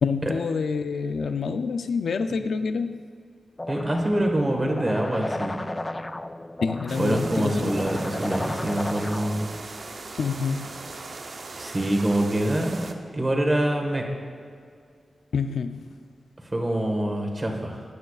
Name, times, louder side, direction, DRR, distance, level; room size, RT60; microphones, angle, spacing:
voice 1, 0.0-3.0 6.6-7.9 10.2-10.9 15.3-15.9, left 5 dB, 75° left, 9 dB, 0.5 m, -27 dB
sound 1, 3.6-9.6, left 1 dB, 15° left, 0.3 m, -34 dB
voice 2, 3.7-5.6 7.0-9.5 11.6-12.9 13.1-14.0 16.4-17.8, right 1 dB, 25° right, 2 dB, 1.5 m, -25 dB
sound 2, 6.9-12.9, right 3 dB, 50° right, 0.7 m, -39 dB
18.0 x 9.2 x 2.4 m, 2.1 s
wide cardioid pair, 125°, 0 cm